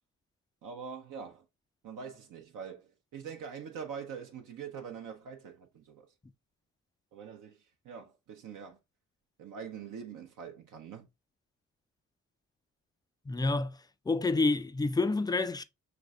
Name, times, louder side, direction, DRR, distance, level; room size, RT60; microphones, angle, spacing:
voice 1, 0.6-1.4 1.8-6.1 7.1-7.6 7.8-8.8 9.4-11.1, right 6 dB, 60° right, 0.7 m, -44 dB
voice 2, 13.3-13.8 14.1-15.6, left 3 dB, 10° left, 0.3 m, -28 dB
5.1 x 3.3 x 2.3 m
hypercardioid pair, 40°, 36 cm